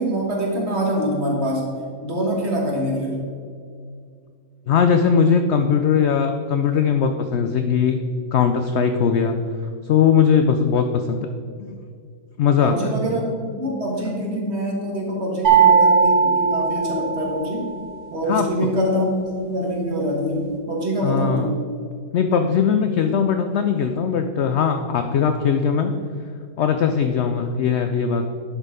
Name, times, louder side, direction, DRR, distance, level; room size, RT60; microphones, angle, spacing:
voice 1, 0.0-1.7 2.0-3.3 12.6-17.7 18.1-19.1 19.3-21.6, equal, 45° right, -1 dB, 1.8 m, -24 dB
voice 2, 4.7-8.0 8.3-9.4 9.8-11.3 11.6-11.8 12.4-12.9 18.3-18.5 21.0-21.6 22.1-25.9 26.6-28.3, left 7 dB, 70° left, 7 dB, 0.6 m, -19 dB
sound 1, 15.4-17.6, right 6 dB, 75° right, 2.4 m, -17 dB
10.5 x 4.5 x 4.9 m, 2.2 s
omnidirectional pair, 1.6 m